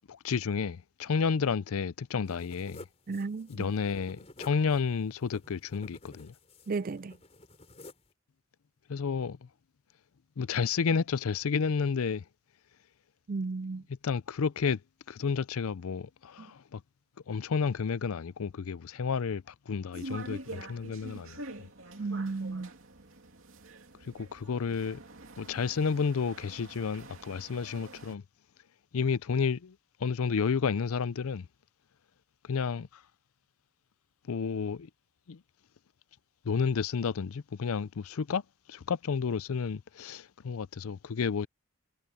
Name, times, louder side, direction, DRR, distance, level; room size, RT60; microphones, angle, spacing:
voice 1, 0.1-2.8 3.5-6.3 8.9-9.5 10.4-12.2 14.0-14.8 15.1-16.8 17.3-21.7 24.0-25.0 25.4-28.2 28.9-31.5 32.5-33.0 34.3-34.9 35.3-35.4 36.4-38.4 38.7-41.5, left 5 dB, 75° left, 0.5 m, -31 dB
sound 1, 2.2-8.1, left 2 dB, 30° left, 5.1 m, -52 dB
voice 2, 3.1-3.7 6.7-7.2 13.3-13.8 16.4-16.5 22.0-22.7, right 4 dB, 40° right, 0.4 m, -34 dB
sound 2, 19.9-28.1, right 2 dB, 65° right, 2.8 m, -46 dB
head